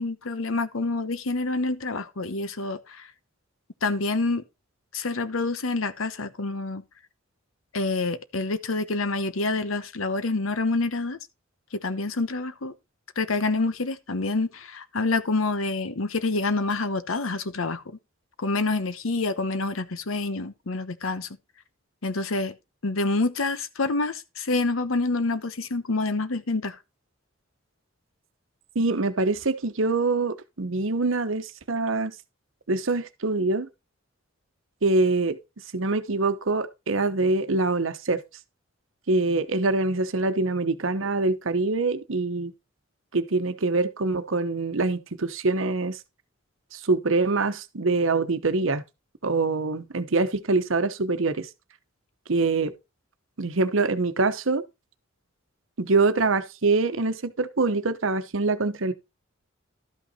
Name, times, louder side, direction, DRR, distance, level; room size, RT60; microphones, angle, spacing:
voice 1, 0.0-3.1 3.8-4.4 4.9-6.8 7.7-11.2 11.7-12.7 13.2-18.0 18.4-21.3 22.0-22.5 22.8-26.8, left 3 dB, 85° left, 1.0 m, -27 dB
voice 2, 28.7-32.1 32.7-33.7 34.8-35.4 35.7-38.2 39.1-42.5 43.1-46.0 46.7-48.8 49.2-51.5 52.3-52.7 53.4-54.6 55.8-58.9, right 3 dB, 75° right, 0.9 m, -24 dB
12.5 x 5.8 x 4.2 m
head